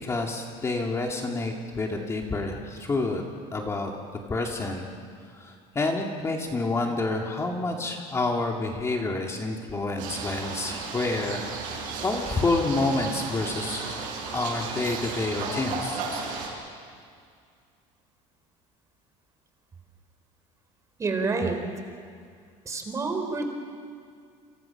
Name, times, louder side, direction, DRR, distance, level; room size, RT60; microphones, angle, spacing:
voice 1, 0.0-3.2 3.5-3.9 4.3-4.9 5.3-11.8 12.0-14.0 14.3-16.0, left 2 dB, 20° left, 1 dB, 2.4 m, -28 dB
sound 1, 10.0-16.5, right 4 dB, 70° right, 7.6 m, -34 dB
voice 2, 21.0-21.6 22.7-23.5, right 3 dB, 20° right, 5 dB, 3.7 m, -28 dB
29.5 x 27.0 x 6.0 m, 2.2 s
cardioid pair, 140°, 14 cm